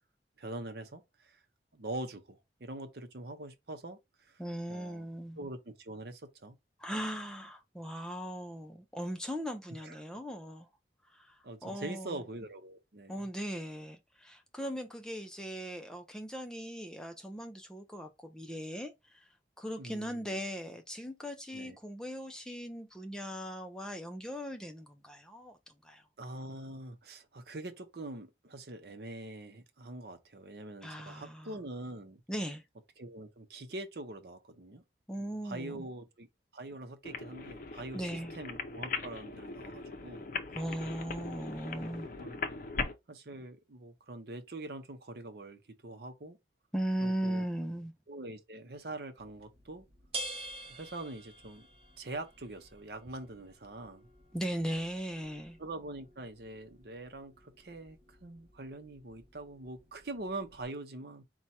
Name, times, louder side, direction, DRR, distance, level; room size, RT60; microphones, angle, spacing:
voice 1, 0.4-1.4 1.7-4.4 4.7-5.1 5.4-6.6 9.8-10.0 11.4-13.3 19.8-20.4 21.5-21.8 26.2-32.2 33.0-34.8 35.2-36.3 36.5-40.3 41.2-41.3 42.0-42.4 43.1-46.4 47.0-47.4 48.1-49.8 50.7-51.7 52.0-54.1 55.6-61.2, right 2 dB, 60° right, 0.7 m, -44 dB
voice 2, 4.4-5.4 6.8-10.7 11.1-12.2 13.1-19.2 19.6-26.0 30.8-31.5 32.3-32.6 35.1-35.9 37.9-38.3 40.5-42.1 46.7-47.9 54.3-55.6, equal, 5° left, 0.5 m, -38 dB
sound 1, 37.0-42.9, left 4 dB, 45° left, 0.6 m, -40 dB
sound 2, 49.2-60.6, right 1 dB, 30° right, 1.0 m, -49 dB
4.3 x 2.3 x 4.2 m
head